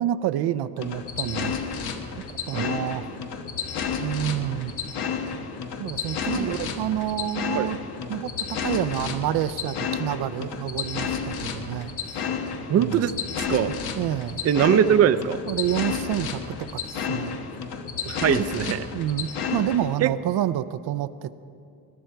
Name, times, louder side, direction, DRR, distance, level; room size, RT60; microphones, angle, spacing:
voice 1, 0.0-1.5 2.5-3.1 4.0-4.7 5.8-6.5 6.8-7.8 8.1-11.9 12.8-13.1 14.0-14.4 15.5-17.4 18.9-21.3, right 12 dB, 85° right, 13 dB, 0.6 m, -28 dB
sound 1, 0.8-19.9, left 6 dB, 85° left, 1.3 m, -31 dB
voice 2, 6.4-6.7 7.6-7.7 12.7-13.1 13.4-13.7 14.4-15.4 18.1-18.9 20.0-20.1, right 9 dB, 40° right, 13 dB, 0.4 m, -21 dB
20.0 x 12.5 x 4.6 m, 2.6 s
cardioid pair, 140°, 37 cm